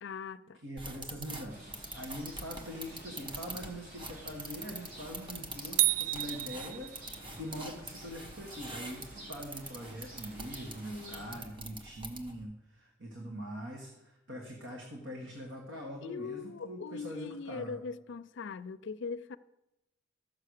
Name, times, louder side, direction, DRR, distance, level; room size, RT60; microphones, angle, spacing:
voice 1, 0.0-0.6 10.8-11.4 16.0-19.4, left 5 dB, 65° left, 0.5 m, -41 dB
voice 2, 0.6-17.8, equal, 65° right, 1.8 m, -43 dB
sound 1, 0.8-12.4, right 2 dB, 25° right, 1.2 m, -45 dB
Rain, 1.5-11.4, right 1 dB, 45° right, 4.2 m, -52 dB
sound 2, 5.8-7.4, right 18 dB, 80° right, 0.3 m, -30 dB
14.0 x 6.7 x 6.5 m
head